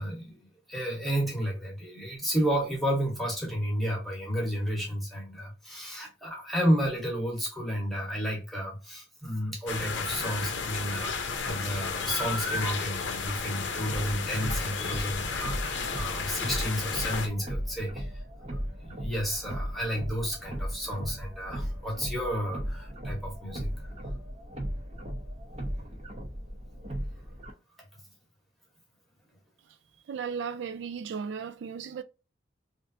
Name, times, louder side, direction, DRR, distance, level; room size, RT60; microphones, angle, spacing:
voice 1, 0.0-18.1 18.5-23.7, equal, ahead, 1.1 m, -32 dB
sound 1, 9.7-17.3, left 5 dB, 75° left, 0.6 m, -33 dB
sound 2, 13.8-27.5, equal, 35° right, 0.7 m, -37 dB
voice 2, 30.1-32.0, right 6 dB, 75° right, 0.3 m, -35 dB
3.2 x 2.5 x 2.6 m
head